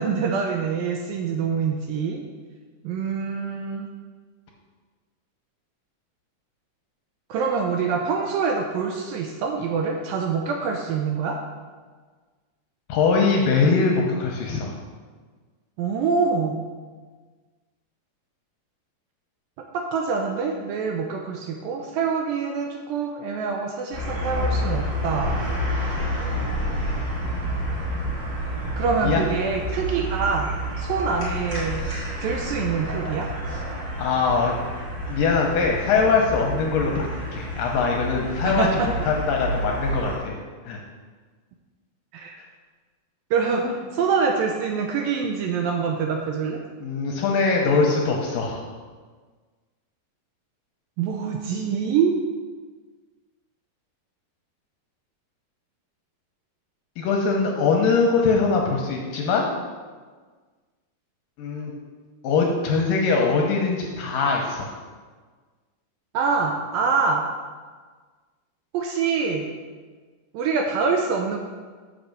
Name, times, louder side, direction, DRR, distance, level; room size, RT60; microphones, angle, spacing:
voice 1, 0.0-2.2 2.8-3.9 7.3-11.4 15.8-16.6 19.7-25.4 28.8-31.8 32.2-33.3 38.4-38.9 42.1-42.4 43.3-43.6 43.9-46.6 51.0-52.1 66.1-67.2 68.7-69.5 70.3-71.4, right 5 dB, 80° right, 2 dB, 2.1 m, -25 dB
voice 2, 12.9-14.7 29.0-29.3 34.0-34.6 35.1-40.4 40.7-40.8 43.6-43.7 46.8-48.7 57.0-59.5 61.4-61.7 62.2-64.7, left 4 dB, 75° left, 0 dB, 2.2 m, -22 dB
sound 1, 23.9-40.2, equal, 30° right, 1.9 m, -29 dB
7.3 x 5.1 x 6.6 m, 1.5 s
omnidirectional pair, 4.6 m